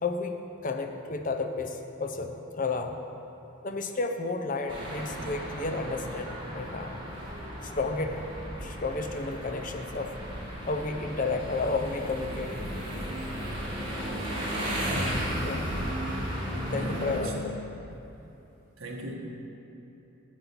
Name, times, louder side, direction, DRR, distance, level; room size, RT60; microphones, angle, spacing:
voice 1, 0.0-3.0 3.6-7.0 7.6-8.2 8.5-10.1 10.7-12.8 15.4-15.7 16.7-17.5, left 3 dB, 40° left, 5 dB, 0.6 m, -32 dB
sound 1, 4.7-17.2, equal, 25° right, 2.1 m, -34 dB
voice 2, 16.5-17.4 18.8-19.1, right 2 dB, 75° right, -1 dB, 1.4 m, -38 dB
9.1 x 7.5 x 5.9 m, 3.0 s
head